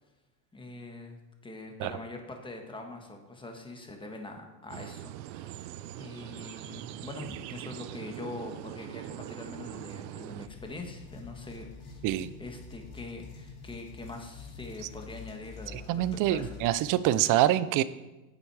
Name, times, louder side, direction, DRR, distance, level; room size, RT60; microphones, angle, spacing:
voice 1, 0.5-1.2 1.4-12.0 12.4-16.5, left 2 dB, 10° left, 3 dB, 1.4 m, -43 dB
sound 1, 4.7-10.5, right 14 dB, 80° right, 0.7 m, -42 dB
sound 2, 10.4-16.8, left 5 dB, 65° left, 3.0 m, -46 dB
voice 2, 15.7-17.8, right 13 dB, 40° right, 16 dB, 0.5 m, -25 dB
8.8 x 7.9 x 4.7 m, 1.1 s
supercardioid pair, 125°, 50 cm